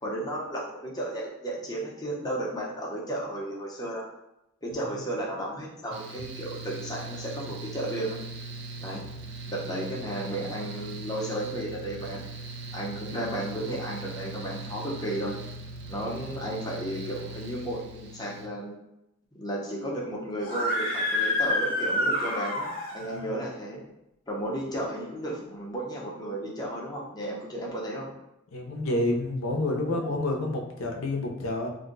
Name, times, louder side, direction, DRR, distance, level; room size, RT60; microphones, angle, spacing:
voice 1, 0.0-4.0 4.6-8.2 8.8-9.1 9.5-12.2 12.7-15.4 15.9-18.8 19.4-22.7 22.9-23.8 24.3-28.1 29.8-30.1, right 1 dB, 20° left, -4 dB, 0.6 m, -33 dB
Mechanical fan, 5.9-18.5, right 2 dB, 55° right, 0.4 m, -40 dB
Screaming, 20.4-23.2, left 1 dB, 45° left, 0.9 m, -28 dB
voice 2, 28.5-31.7, left 2 dB, 85° left, 1 dB, 0.5 m, -29 dB
2.6 x 2.1 x 3.8 m, 0.86 s
head